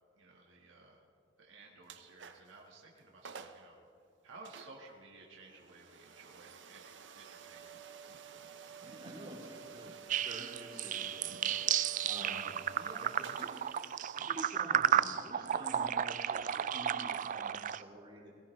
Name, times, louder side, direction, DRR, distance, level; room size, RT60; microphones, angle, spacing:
voice 1, 0.1-1.0 1.4-3.8 4.2-7.8 12.2-12.5, right 3 dB, 90° right, -2 dB, 1.6 m, -55 dB
sound 1, 1.8-2.6 3.0-3.1 3.2-3.7 4.4-17.2, right 5 dB, 65° right, 0.8 m, -52 dB
voice 2, 8.6-13.7 14.1-18.4, right 1 dB, 25° right, -5 dB, 3.1 m, -49 dB
sound 2, 10.1-17.8, right 9 dB, 45° right, 0.3 m, -33 dB
21.0 x 17.5 x 3.2 m, 2.4 s
head